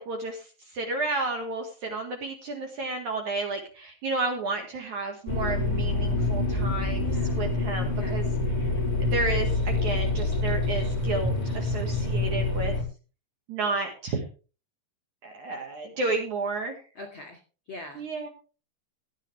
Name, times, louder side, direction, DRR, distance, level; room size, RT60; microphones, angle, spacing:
voice 1, 0.0-8.3 8.6-8.7 9.0-12.7 13.5-14.2 15.2-16.8 18.0-18.3, right 3 dB, 55° right, 3 dB, 2.4 m, -32 dB
sound 1, 5.3-12.8, left 2 dB, 15° left, 2.2 m, -26 dB
voice 2, 7.0-7.4 7.9-8.2 17.0-17.4 17.7-18.0, left 2 dB, 40° left, 5 dB, 2.0 m, -42 dB
17.0 x 10.5 x 3.3 m, 0.35 s
omnidirectional pair, 5.2 m